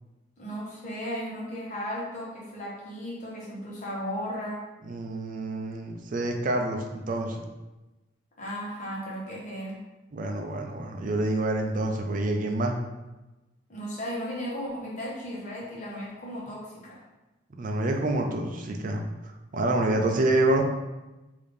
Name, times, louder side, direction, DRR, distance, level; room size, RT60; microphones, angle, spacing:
voice 1, 0.4-4.6 8.4-9.8 13.7-17.0, equal, 40° left, -5 dB, 1.0 m, -35 dB
voice 2, 4.8-7.4 10.1-12.7 17.6-19.0 19.5-20.6, right 2 dB, 40° right, 3 dB, 0.4 m, -27 dB
3.4 x 2.7 x 3.4 m, 1.1 s
head